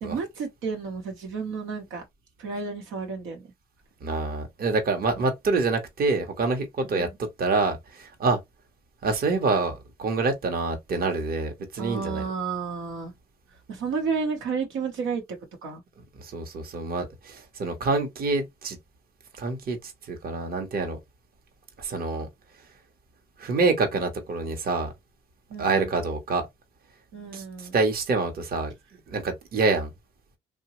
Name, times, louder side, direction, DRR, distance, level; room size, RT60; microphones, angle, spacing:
voice 1, 0.0-2.0 2.4-3.5 6.9-7.1 11.8-13.1 13.7-15.8 25.5-25.9 27.1-27.7, right 5 dB, 90° right, 1.0 m, -32 dB
voice 2, 4.0-8.4 9.0-12.3 16.2-18.8 19.4-21.0 21.8-22.3 23.4-24.9 25.6-26.5 27.3-28.7 29.1-29.9, right 3 dB, 50° right, 0.9 m, -26 dB
2.9 x 2.2 x 2.9 m
cardioid pair, 90°, 20 cm